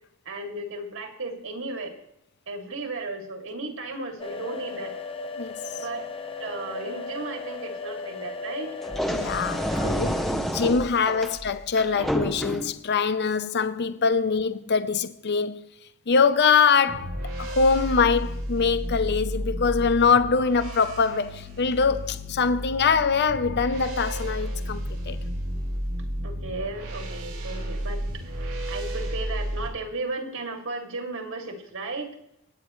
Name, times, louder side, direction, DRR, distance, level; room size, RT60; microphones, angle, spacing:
voice 1, 0.2-2.0 2.5-5.0 5.7-6.1 6.4-8.7 9.5-9.9 11.1-11.2 26.2-32.1, right 2 dB, 60° right, 2.6 m, -35 dB
sound 1, 4.2-10.3, left 4 dB, 25° left, 0.9 m, -36 dB
sound 2, 8.8-12.8, equal, ahead, 1.1 m, -29 dB
voice 2, 9.1-15.6 16.1-25.2, left 5 dB, 50° left, 0.7 m, -23 dB
sound 3, 16.9-29.7, equal, 90° right, 3.8 m, -32 dB
26.0 x 9.7 x 3.2 m
head